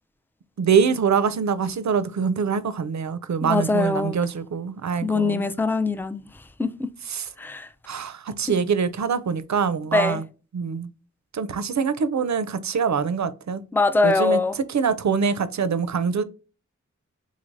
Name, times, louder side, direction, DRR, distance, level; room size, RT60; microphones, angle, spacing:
voice 1, 0.6-5.4 7.1-7.2 7.9-10.2 10.5-10.9 11.3-13.6 14.0-14.4 14.7-16.2, right 6 dB, 65° right, 0.5 m, -24 dB
voice 2, 3.4-4.2 5.0-6.3 6.6-6.9 7.4-7.7 9.9-10.2 13.7-14.6, left 3 dB, 5° left, 0.4 m, -22 dB
3.9 x 3.1 x 2.5 m
wide cardioid pair, 45°, 31 cm